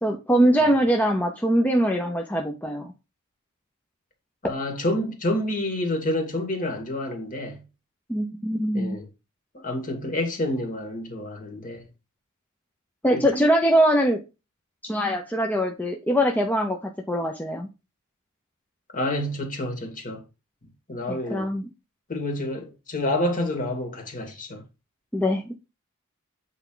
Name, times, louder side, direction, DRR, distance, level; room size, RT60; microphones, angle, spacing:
voice 1, 0.0-2.9 8.1-9.0 13.0-14.2 14.8-17.7 21.1-21.7 25.1-25.6, equal, 10° left, 0.8 m, -22 dB
voice 2, 4.4-7.6 8.7-9.0 9.6-11.8 13.1-13.3 18.9-20.2 20.9-21.5 22.1-24.6, left 1 dB, 40° left, 2.3 m, -28 dB
8.0 x 4.6 x 3.9 m
head